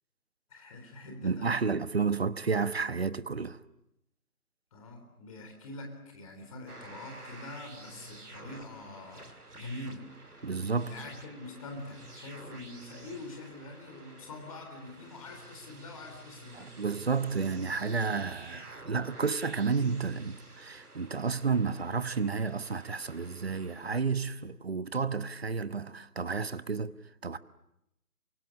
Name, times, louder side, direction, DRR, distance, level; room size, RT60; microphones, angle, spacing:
voice 1, 0.5-1.7 4.7-10.1 10.8-16.7, left 2 dB, 25° left, 4.0 m, -45 dB
voice 2, 1.2-3.6 10.4-10.9 16.5-27.0 27.2-27.4, right 5 dB, 40° right, 1.1 m, -31 dB
sound 1, 6.7-24.0, right 2 dB, 80° right, 2.7 m, -50 dB
28.5 x 24.5 x 8.6 m
figure-of-eight pair, 150°, 45 cm